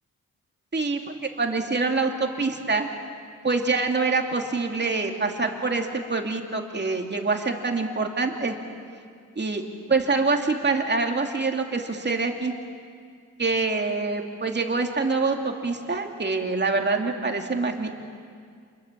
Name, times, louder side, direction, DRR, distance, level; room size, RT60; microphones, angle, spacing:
voice 1, 0.7-2.9 3.4-8.6 9.4-9.6 9.9-12.5 13.4-17.9, right 3 dB, 35° right, 3 dB, 2.7 m, -25 dB
28.5 x 21.5 x 7.5 m, 2.1 s
cardioid pair, 85°, 31 cm